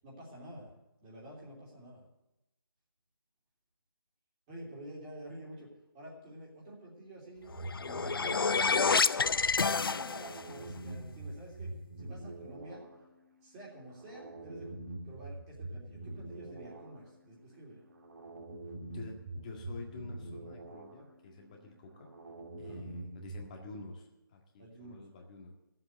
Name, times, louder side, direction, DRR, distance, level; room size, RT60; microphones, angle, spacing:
voice 1, 0.0-0.7 1.0-2.0 4.5-7.5 7.8-8.5 9.6-12.8 13.4-17.8 22.6-23.0 24.6-25.1, right 1 dB, 15° right, -4 dB, 3.1 m, -49 dB
sound 1, 7.5-10.5, left 5 dB, 75° left, 0.5 m, -28 dB
sound 2, 7.5-23.5, right 2 dB, 45° right, 1.9 m, -46 dB
voice 2, 18.8-22.1 22.6-25.5, left 3 dB, 20° left, 1 dB, 1.8 m, -48 dB
14.5 x 7.9 x 7.8 m, 0.92 s
figure-of-eight pair, 165°, 12 cm